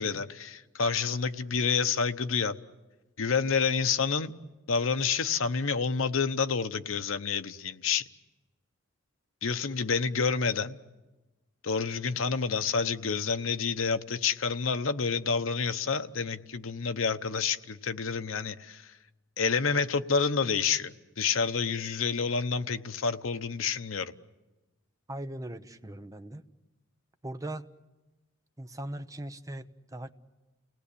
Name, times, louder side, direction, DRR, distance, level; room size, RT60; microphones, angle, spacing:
voice 1, 0.0-2.6 3.2-4.3 4.7-8.0 9.4-10.8 11.6-18.9 19.4-24.1, left 5 dB, 85° left, 0.9 m, -28 dB
voice 2, 25.1-26.4 27.2-27.7 28.6-30.1, right 1 dB, 15° right, 0.8 m, -39 dB
29.5 x 18.5 x 8.4 m
head